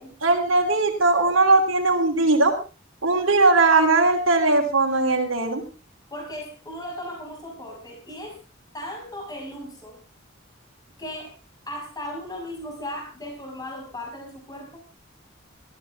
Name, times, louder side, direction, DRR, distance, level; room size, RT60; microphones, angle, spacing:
voice 1, 0.2-2.5 3.0-5.6, right 3 dB, 80° right, -3 dB, 3.1 m, -19 dB
voice 2, 6.1-8.4 8.7-10.0 11.0-11.3 11.7-14.8, left 1 dB, 20° left, 1 dB, 6.0 m, -36 dB
20.5 x 14.5 x 3.5 m, 0.33 s
head